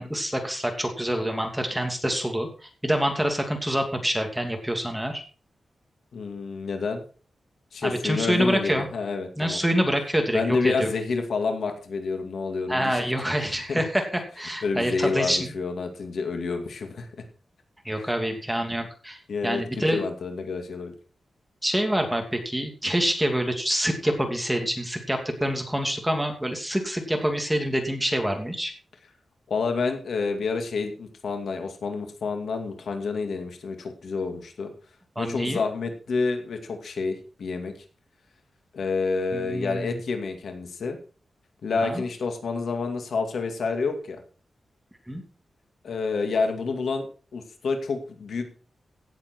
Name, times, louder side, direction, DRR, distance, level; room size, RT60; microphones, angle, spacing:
voice 1, 0.0-2.5 2.8-5.2 7.8-8.9 9.4-10.9 12.7-15.5 17.8-19.2 19.4-20.0 21.6-28.7 35.2-35.6 39.3-40.0 41.8-42.0 45.1-45.2, equal, 5° right, 4 dB, 2.6 m, -26 dB
voice 2, 6.1-7.0 7.7-9.6 10.3-13.1 13.7-13.8 14.6-17.1 18.0-18.1 19.3-20.9 29.5-34.7 35.2-37.7 38.7-41.0 41.6-44.2 45.8-47.1 47.3-48.5, left 4 dB, 75° left, 5 dB, 2.2 m, -28 dB
16.5 x 7.5 x 4.5 m, 0.38 s
wide cardioid pair, 120°, 0 cm